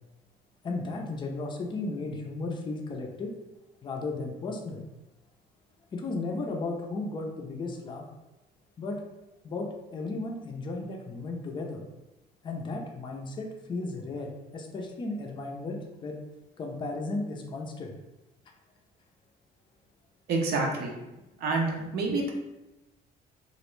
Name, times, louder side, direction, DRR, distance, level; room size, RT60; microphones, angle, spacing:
voice 1, 0.6-3.3 3.8-4.8 5.9-8.0 8.8-9.0 9.4-11.8 12.4-16.2 16.6-17.9, left 3 dB, 30° left, 1 dB, 0.4 m, -35 dB
voice 2, 20.3-20.9 21.4-22.3, right 3 dB, 65° right, 1 dB, 0.6 m, -27 dB
2.4 x 2.0 x 3.0 m, 1.0 s
cardioid pair, 110°, 17 cm